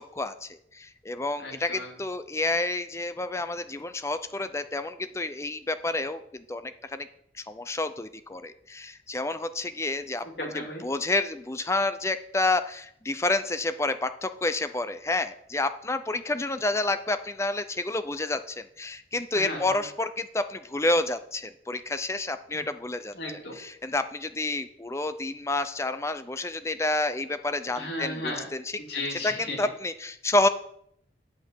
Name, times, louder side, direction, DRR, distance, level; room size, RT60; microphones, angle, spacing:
voice 1, 0.0-7.1 7.5-10.3 10.5-23.1 23.6-28.8 29.2-30.5, left 2 dB, 15° left, 11 dB, 0.6 m, -29 dB
voice 2, 1.4-1.9 10.2-10.8 19.3-19.8 22.5-22.6 23.1-23.6 27.8-28.5 28.9-29.7, left 1 dB, 65° left, 0 dB, 2.9 m, -35 dB
8.6 x 6.1 x 7.6 m, 0.69 s
head